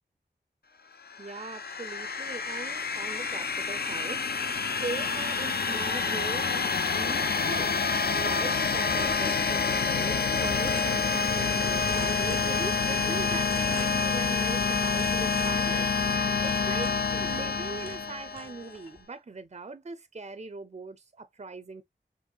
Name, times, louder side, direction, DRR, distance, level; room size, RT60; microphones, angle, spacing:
sound 1, 1.1-18.7, left 5 dB, 55° left, 0.5 m, -28 dB
voice 1, 1.2-4.5 4.8-7.7 8.1-15.9 16.4-21.8, right 3 dB, 35° right, 0.5 m, -40 dB
sound 2, 8.9-10.0 10.3-11.5 11.8-13.0 13.5-14.6 15.0-17.6 17.8-19.0, left 2 dB, 40° left, 1.4 m, -47 dB
5.3 x 3.2 x 2.3 m
wide cardioid pair, 45°, 19 cm